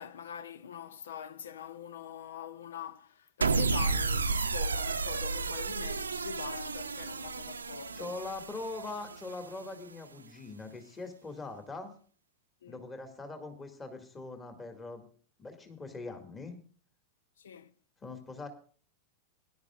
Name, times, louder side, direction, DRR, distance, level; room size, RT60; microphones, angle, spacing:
voice 1, 0.0-8.2 12.6-12.8 17.4-17.7, left 8 dB, 65° left, 0.8 m, -43 dB
sound 1, 3.4-9.7, right 4 dB, 75° right, 0.7 m, -32 dB
voice 2, 7.9-11.9 12.7-15.0 15.4-16.5 18.0-18.5, left 3 dB, 20° left, 2.4 m, -42 dB
20.0 x 11.5 x 2.5 m
figure-of-eight pair, 90°, 0 cm